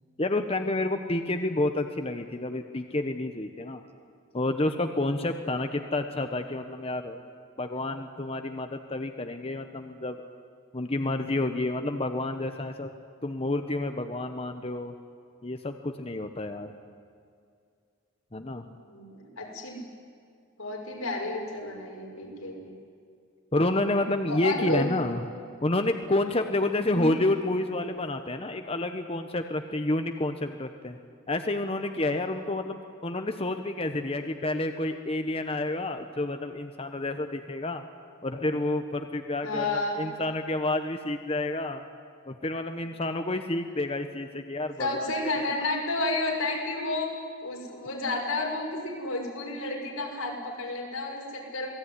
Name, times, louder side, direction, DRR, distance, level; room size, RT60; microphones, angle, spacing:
voice 1, 0.2-3.8 4.3-7.2 7.6-10.2 10.7-12.9 13.2-14.9 15.4-16.7 18.3-18.6 23.5-25.3 25.6-31.0 31.3-32.8 33.0-37.8 38.2-41.8 42.3-45.1, left 2 dB, 25° left, 6 dB, 1.0 m, -29 dB
voice 2, 18.7-19.8 20.6-22.7 24.3-24.9 26.8-27.1 39.4-40.2 44.8-47.1 47.4-51.7, left 2 dB, 90° left, 0 dB, 6.1 m, -31 dB
27.5 x 19.0 x 9.8 m, 2.3 s
head